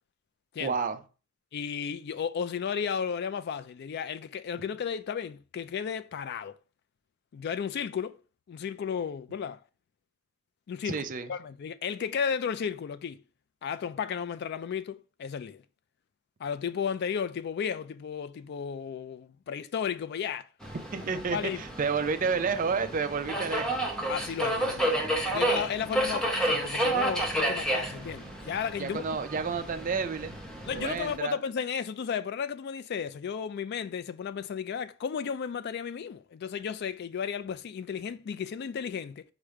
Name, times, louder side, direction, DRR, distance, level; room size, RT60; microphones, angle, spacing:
voice 1, 0.6-1.0 10.8-11.3 20.9-23.8 28.8-30.4 30.7-31.4, right 5 dB, 40° right, 0.4 m, -30 dB
voice 2, 1.5-6.6 7.3-8.2 8.5-9.6 10.7-13.2 13.6-15.6 16.4-20.5 21.3-21.6 24.1-29.0 30.6-39.2, left 7 dB, 50° left, 0.3 m, -34 dB
Subway metro underground, 20.6-31.2, right 1 dB, 5° left, 0.7 m, -31 dB
4.9 x 2.1 x 4.5 m
head